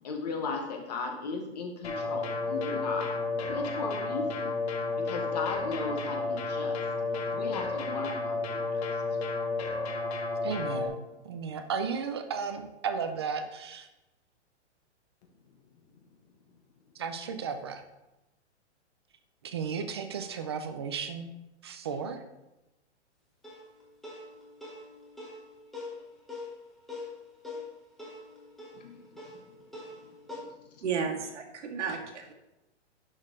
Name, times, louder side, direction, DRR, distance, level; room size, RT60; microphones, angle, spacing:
voice 1, 0.0-4.5 4.8-9.2 28.7-29.6 30.4-30.5, left 4 dB, 35° left, 2 dB, 1.1 m, -37 dB
sound 1, 1.8-10.9, left 3 dB, 60° left, 1.9 m, -32 dB
voice 2, 10.4-13.9 16.9-17.8 19.4-21.3 21.6-22.2, right 6 dB, 25° right, 8 dB, 0.5 m, -34 dB
sound 2, 23.4-30.4, left 3 dB, ahead, 0.9 m, -44 dB
voice 3, 30.8-32.3, right 6 dB, 80° right, 1 dB, 2.1 m, -33 dB
10.5 x 6.4 x 3.7 m, 0.96 s
hypercardioid pair, 170°, 35 cm